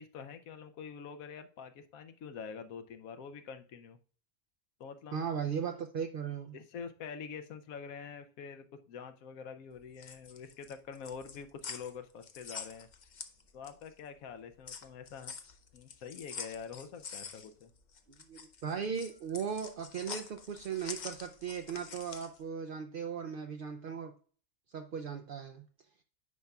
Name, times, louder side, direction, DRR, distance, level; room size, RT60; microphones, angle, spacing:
voice 1, 0.0-4.0 4.8-5.3 6.5-12.9 13.5-15.3 15.7-17.7, left 6 dB, 80° left, 8 dB, 1.1 m, -46 dB
voice 2, 5.1-6.6 18.3-24.1 24.7-25.6, right 7 dB, 65° right, 6 dB, 0.5 m, -37 dB
sound 1, 9.8-13.9 14.3-22.4, left 6 dB, 50° left, 0.5 m, -46 dB
9.6 x 5.4 x 2.3 m, 0.42 s
omnidirectional pair, 1.5 m